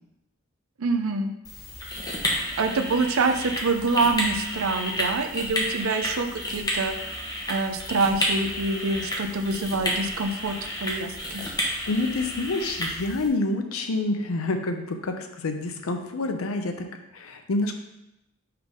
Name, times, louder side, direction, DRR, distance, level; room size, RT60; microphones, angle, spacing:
voice 1, 0.8-1.3 2.6-6.9 7.5-11.4, right 3 dB, 85° right, 7 dB, 0.6 m, -26 dB
sound 1, 1.4-13.3, equal, 20° left, 1.1 m, -31 dB
voice 2, 11.9-17.7, left 2 dB, 90° left, 6 dB, 0.6 m, -28 dB
5.6 x 3.5 x 5.2 m, 0.89 s
head